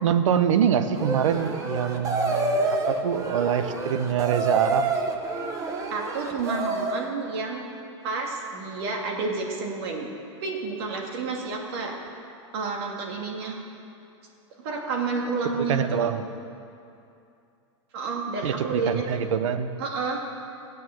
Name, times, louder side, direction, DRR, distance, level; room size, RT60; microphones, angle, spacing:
voice 1, 0.0-4.8 15.6-16.3 18.4-19.7, right 8 dB, 85° right, 11 dB, 0.8 m, -25 dB
sound 1, 0.9-7.1, right 3 dB, 20° right, 0.9 m, -28 dB
voice 2, 5.9-7.6 8.0-10.1 10.4-12.0 12.5-13.6 14.6-16.1 17.9-19.0 19.8-20.2, right 4 dB, 55° right, 0 dB, 2.3 m, -30 dB
14.5 x 8.3 x 7.2 m, 2.6 s
supercardioid pair, 155°, 16 cm